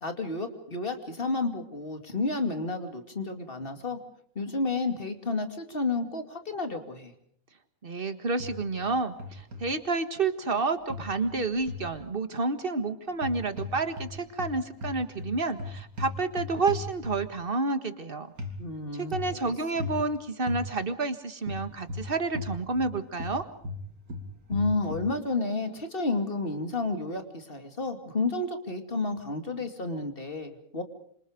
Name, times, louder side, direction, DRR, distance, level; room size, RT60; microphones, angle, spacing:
voice 1, 0.0-4.0 4.3-7.1 18.6-19.8 24.5-30.8, left 3 dB, 40° left, 7 dB, 2.7 m, -31 dB
voice 2, 7.8-18.3 18.9-23.4, right 3 dB, 40° right, 10 dB, 1.8 m, -30 dB
sound 1, 8.4-8.9 9.2-9.6 10.9-11.9 13.1-14.1 14.4-17.4 18.4-18.6 19.1-19.4 19.8-20.0 20.5-20.6 21.4-22.9 23.2-25.1, left 2 dB, 85° right, 3.3 m, -36 dB
27.0 x 26.0 x 5.1 m, 0.64 s
omnidirectional pair, 1.5 m